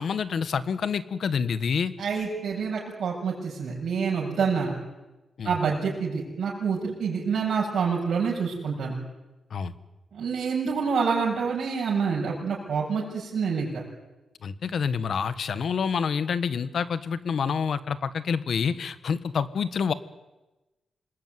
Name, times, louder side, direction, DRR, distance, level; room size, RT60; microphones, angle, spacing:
voice 1, 0.0-1.9 5.4-5.5 9.5-9.7 14.4-19.9, left 6 dB, 65° left, 13 dB, 1.4 m, -27 dB
voice 2, 2.0-4.7 5.4-8.9 10.1-13.8, right 5 dB, 65° right, -5 dB, 7.6 m, -27 dB
27.5 x 20.5 x 9.7 m, 1.1 s
wide cardioid pair, 120°, 0 cm